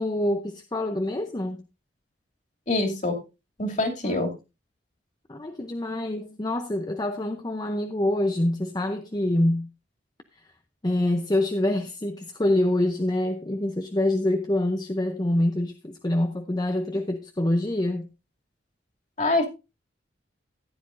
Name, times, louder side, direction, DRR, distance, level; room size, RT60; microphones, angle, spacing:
voice 1, 0.0-1.6 4.0-4.2 5.3-9.7 10.8-18.1, left 1 dB, 20° left, 0.6 m, -26 dB
voice 2, 2.7-3.2 3.6-4.3 19.2-19.5, left 2 dB, 40° left, 2.5 m, -24 dB
14.5 x 9.9 x 2.5 m
head